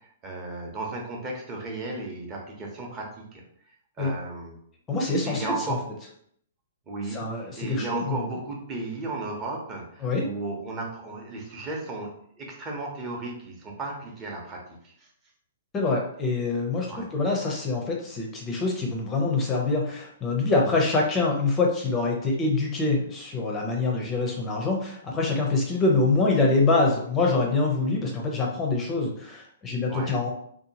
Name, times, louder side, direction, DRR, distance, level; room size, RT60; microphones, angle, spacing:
voice 1, 0.0-3.4 4.0-4.6 5.2-5.8 6.9-12.1 12.4-15.1 16.9-17.1 29.9-30.1, right 2 dB, 25° right, -1 dB, 0.7 m, -35 dB
voice 2, 4.9-5.8 7.1-8.2 10.0-10.2 15.7-30.3, left 3 dB, 20° left, 0 dB, 0.5 m, -25 dB
2.7 x 2.2 x 2.7 m, 0.65 s
hypercardioid pair, 140°, 0 cm